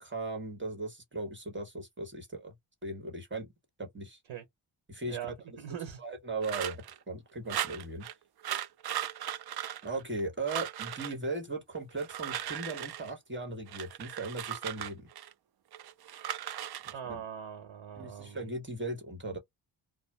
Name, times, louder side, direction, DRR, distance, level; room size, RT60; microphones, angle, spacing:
voice 1, 0.0-2.5 2.8-3.5 3.8-4.2 4.9-5.3 6.0-8.1 9.8-15.1 16.8-17.2 18.0-19.4, right 2 dB, 25° right, 1.2 m, -38 dB
voice 2, 5.6-6.0 16.9-18.5, right 9 dB, 80° right, 1.1 m, -41 dB
sound 1, 6.4-7.0 7.5-8.1 8.4-10.2 10.5-11.1 11.9-13.1 13.7-15.3 15.7-16.9, right 11 dB, 55° right, 0.5 m, -37 dB
2.4 x 2.1 x 3.2 m
cardioid pair, 100°, 47 cm